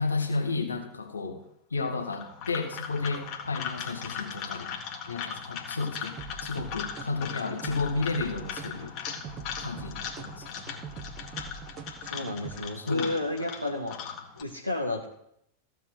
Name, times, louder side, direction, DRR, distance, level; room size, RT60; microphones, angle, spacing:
voice 1, 0.0-1.4 1.7-4.7 5.1-8.9 9.6-10.5 12.8-13.1, left 3 dB, 75° left, 5 dB, 1.5 m, -32 dB
sound 1, 2.0-14.4, left 7 dB, 40° left, 2.1 m, -39 dB
sound 2, 6.2-12.6, right 5 dB, 30° right, 1.2 m, -43 dB
voice 2, 12.0-14.0 14.3-15.1, left 2 dB, 90° left, 0 dB, 1.3 m, -31 dB
15.0 x 5.4 x 7.8 m, 0.75 s
figure-of-eight pair, 90°, 0 cm